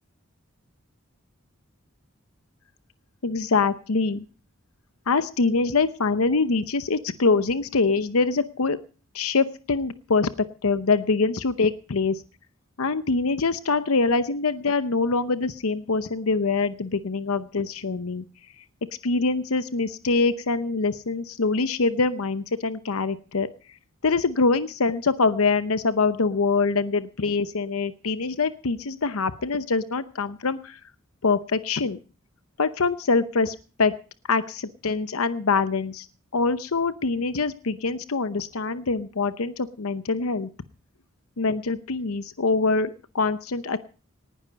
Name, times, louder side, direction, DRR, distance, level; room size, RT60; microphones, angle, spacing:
voice 1, 3.2-4.2 5.1-8.8 9.1-12.2 12.8-18.2 18.6-18.7 19.0-23.5 24.0-30.8 31.2-32.0 32.6-33.9 34.3-36.1 36.3-40.5 41.4-43.8, left 4 dB, 90° left, 13 dB, 0.8 m, -24 dB
19.0 x 11.0 x 5.2 m, 0.38 s
head